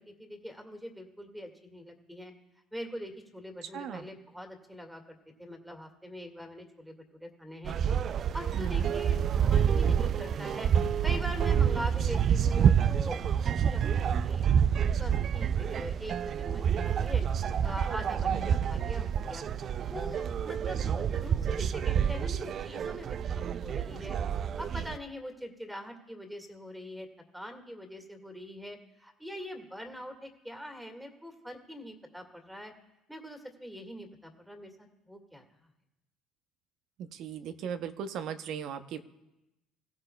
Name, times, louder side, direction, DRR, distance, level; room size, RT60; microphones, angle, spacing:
voice 1, 0.0-2.3 2.7-7.8 8.3-10.7 11.0-14.5 14.8-17.2 17.6-19.4 19.8-24.2 24.6-27.1 27.3-32.7 33.1-35.4, equal, 5° right, 4 dB, 1.9 m, -43 dB
voice 2, 3.7-4.1 8.5-8.9 18.3-18.6 37.0-39.0, right 8 dB, 65° right, 10 dB, 0.7 m, -38 dB
sound 1, 7.6-25.0, right 8 dB, 50° right, 0.3 m, -28 dB
16.0 x 15.5 x 2.3 m, 0.96 s
supercardioid pair, 85°, 0 cm